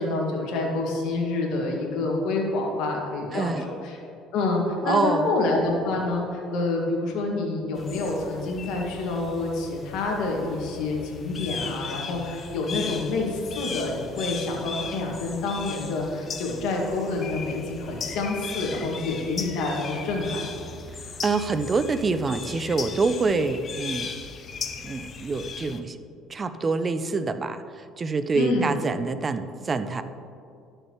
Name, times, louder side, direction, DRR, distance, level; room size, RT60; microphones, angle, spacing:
voice 1, 0.0-4.0 4.3-20.5 28.3-28.7, left 2 dB, 75° left, -1 dB, 1.8 m, -27 dB
voice 2, 3.3-3.6 4.8-5.3 21.2-24.1 24.8-26.0 26.3-30.0, right 4 dB, 30° right, 11 dB, 0.5 m, -26 dB
sound 1, 7.8-25.8, left 5 dB, 40° left, 0.7 m, -37 dB
12.5 x 6.5 x 3.1 m, 2.4 s
supercardioid pair, 90°, 0 cm